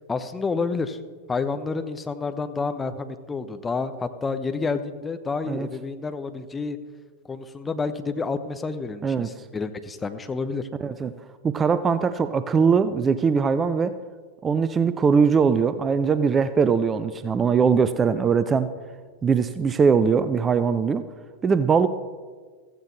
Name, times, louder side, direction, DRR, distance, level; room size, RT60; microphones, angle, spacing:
voice 1, 0.1-1.0 1.3-6.8 7.3-10.7, left 4 dB, 15° left, 9 dB, 0.8 m, -29 dB
voice 2, 10.8-11.1 11.4-14.0 14.4-18.7 19.2-21.0 21.4-21.9, right 6 dB, 20° right, 13 dB, 0.5 m, -21 dB
15.5 x 14.5 x 3.1 m, 1.5 s
figure-of-eight pair, 90°, 0 cm